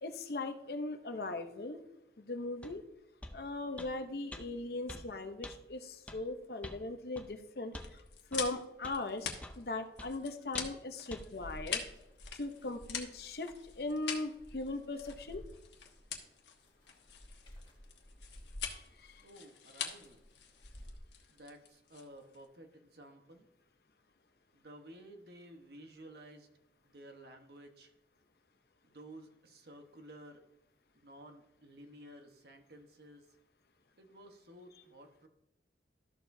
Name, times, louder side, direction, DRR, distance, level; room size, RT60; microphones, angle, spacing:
voice 1, 0.0-1.8 2.2-2.8 3.3-8.0 8.3-9.3 9.6-11.8 12.3-15.4 18.6-19.2, left 2 dB, 60° left, 7 dB, 0.7 m, -39 dB
sound 1, 2.6-2.8 3.2-3.4 3.8-3.9 4.3-4.4 4.9-5.1 5.4-5.6 6.1-6.2 6.6-6.8 7.2-7.3 7.7-7.9 8.3-8.4 8.8-9.0 9.4-9.6 10.0-10.1 10.5-10.8 11.1-11.2 11.7-11.8, left 1 dB, 10° left, 0.5 m, -46 dB
sound 2, 7.8-22.5, left 7 dB, 80° left, 1.2 m, -44 dB
sound 3, 11.4-21.0, equal, 30° left, 1.8 m, -54 dB
voice 2, 19.2-20.2 21.3-23.5 24.5-26.5 26.8-27.9 28.9-30.4 30.9-33.3 34.0-35.3, right 1 dB, 60° right, 5 dB, 1.1 m, -54 dB
13.0 x 6.7 x 2.7 m, 0.86 s
head